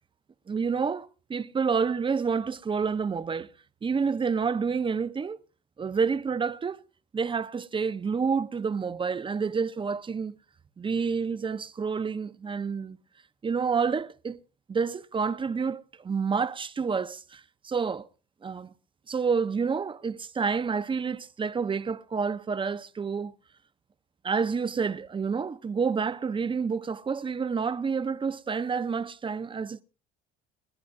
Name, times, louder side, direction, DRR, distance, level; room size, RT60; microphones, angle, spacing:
voice 1, 0.5-3.5 3.8-5.4 5.8-6.8 7.1-10.4 10.8-13.0 13.4-14.4 14.7-18.1 18.4-18.7 19.1-23.3 24.2-29.8, right 5 dB, 25° right, 0.7 m, -29 dB
29.5 x 10.5 x 2.6 m
supercardioid pair, 95°, 20 cm